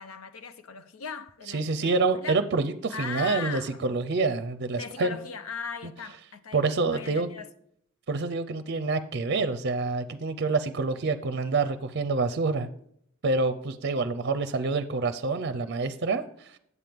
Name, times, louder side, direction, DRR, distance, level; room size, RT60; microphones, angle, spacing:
voice 1, 0.0-2.4 2.9-3.8 4.7-6.7 6.9-7.5, left 6 dB, 85° left, 0.7 m, -39 dB
voice 2, 1.5-5.2 6.5-7.3 8.1-12.7 13.2-16.2, right 3 dB, 55° right, 0.5 m, -27 dB
8.1 x 7.5 x 3.5 m
head